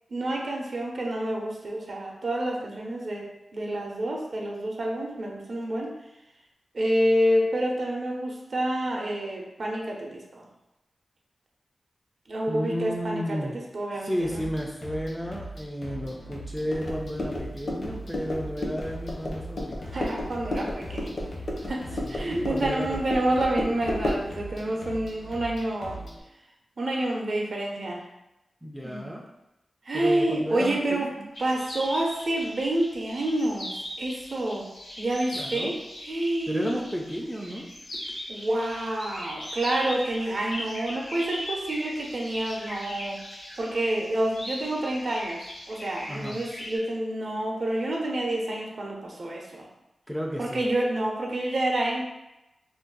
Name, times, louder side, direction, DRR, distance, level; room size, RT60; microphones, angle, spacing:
voice 1, 0.1-3.3 3.5-5.9 6.7-10.5 12.3-14.4 19.9-21.2 21.7-26.0 26.8-28.0 28.8-29.1 29.9-31.1 31.4-34.7 35.0-35.8 36.0-36.8 38.3-43.2 43.6-45.4 45.7-49.7 50.4-52.0, right 1 dB, 55° right, -1 dB, 0.6 m, -28 dB
voice 2, 12.5-13.6 14.0-19.9 22.0-23.0 28.6-29.2 29.9-31.3 35.3-35.7 36.5-37.7 46.1-46.4 50.1-50.6, equal, ahead, -1 dB, 0.3 m, -32 dB
sound 1, 14.2-26.2, right 1 dB, 70° left, 0.8 m, -41 dB
sound 2, 16.7-24.3, left 1 dB, 45° left, 0.5 m, -33 dB
sound 3, 31.3-46.8, left 1 dB, 90° left, 1.2 m, -39 dB
2.5 x 2.2 x 3.8 m, 0.92 s
wide cardioid pair, 125°, 0 cm